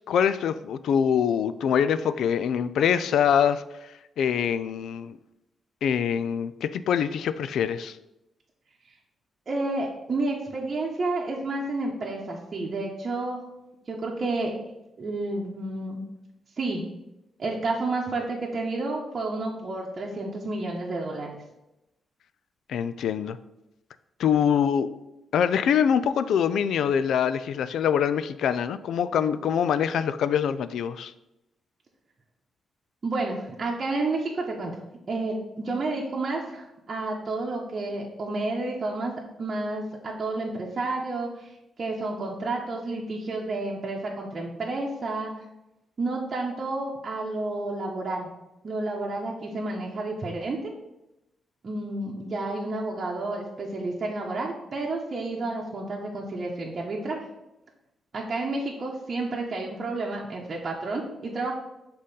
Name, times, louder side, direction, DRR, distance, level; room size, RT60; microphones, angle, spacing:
voice 1, 0.1-3.6 4.2-5.2 5.8-8.0 22.7-23.4 24.2-24.9 25.3-31.1, left 8 dB, 80° left, 14 dB, 0.4 m, -24 dB
voice 2, 9.5-13.4 13.9-14.5 15.0-16.0 16.6-16.8 17.4-21.4 33.0-34.8 35.1-41.5 41.8-45.3 46.0-48.3 48.6-50.7 51.6-57.2 58.1-61.5, right 2 dB, 40° right, -3 dB, 1.1 m, -30 dB
6.4 x 3.8 x 5.5 m, 0.91 s
cardioid pair, 100°, 0 cm